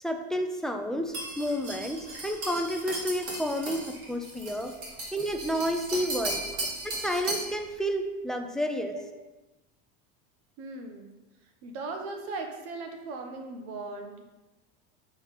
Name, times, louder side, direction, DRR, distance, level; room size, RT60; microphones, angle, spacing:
voice 1, 0.0-4.8 5.1-6.4 6.8-8.9, equal, ahead, 5 dB, 0.4 m, -30 dB
sound 1, 1.1-7.6, right 2 dB, 45° right, 2.4 m, -36 dB
voice 2, 6.3-6.7 8.9-9.2 10.6-11.1 11.6-14.2, right 3 dB, 70° right, 4 dB, 1.2 m, -39 dB
7.1 x 4.1 x 5.4 m, 1.1 s
supercardioid pair, 140°, 34 cm